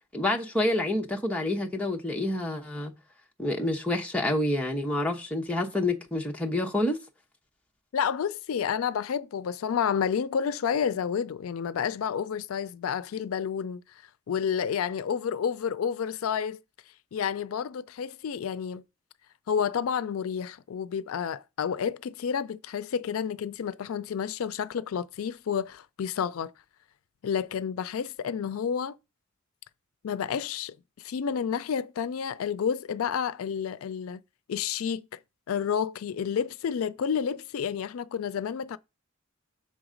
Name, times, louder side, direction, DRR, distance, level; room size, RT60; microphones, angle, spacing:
voice 1, 0.1-2.9 3.4-7.0, left 1 dB, 5° left, 0.9 m, -28 dB
voice 2, 7.9-13.8 14.3-16.6 17.1-18.8 19.5-26.5 27.2-29.0 30.0-34.2 34.5-35.2 35.5-38.8, left 7 dB, 90° left, 0.4 m, -30 dB
6.4 x 3.9 x 5.0 m
head